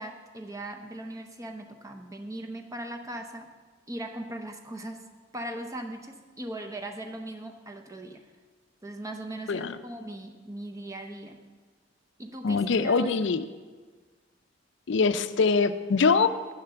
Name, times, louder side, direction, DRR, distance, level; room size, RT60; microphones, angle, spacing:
voice 1, 0.0-3.5 3.9-5.0 5.3-8.2 8.8-11.4 12.2-13.2, right 1 dB, 15° right, 5 dB, 0.7 m, -39 dB
voice 2, 12.4-13.4 14.9-16.3, left 4 dB, 65° left, 11 dB, 0.4 m, -23 dB
8.1 x 6.7 x 6.8 m, 1.4 s
head